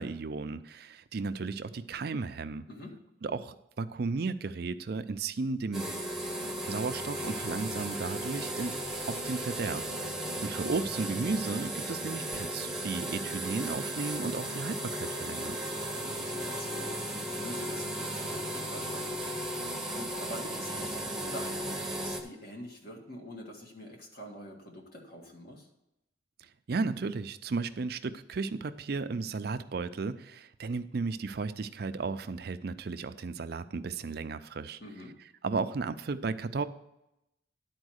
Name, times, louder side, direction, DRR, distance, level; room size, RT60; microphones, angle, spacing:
voice 1, 0.0-2.7 3.2-5.9 6.4-8.8 9.1-15.6 22.2-22.3 26.7-34.8 35.4-36.6, right 4 dB, 55° right, 11 dB, 0.5 m, -34 dB
voice 2, 2.7-3.0 10.0-10.3 15.9-25.7 34.8-35.2, equal, 55° left, 1 dB, 1.8 m, -46 dB
sound 1, 5.7-22.2, right 1 dB, ahead, 0.9 m, -35 dB
11.0 x 4.5 x 6.3 m, 0.88 s
head